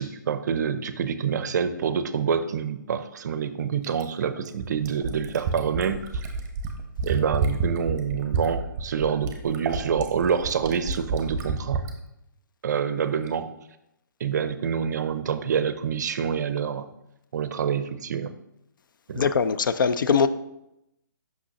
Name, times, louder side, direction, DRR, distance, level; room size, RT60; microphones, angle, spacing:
voice 1, 0.0-6.0 7.0-11.8 12.6-13.5 14.2-16.9 17.3-18.3 19.1-19.3, right 7 dB, 55° right, 0.5 m, -27 dB
Fill (with liquid), 3.8-11.9 13.3-13.4, right 4 dB, 20° right, 0.8 m, -29 dB
voice 2, 19.1-20.3, left 6 dB, 70° left, 0.4 m, -21 dB
6.1 x 5.8 x 2.8 m
hypercardioid pair, 145°, 11 cm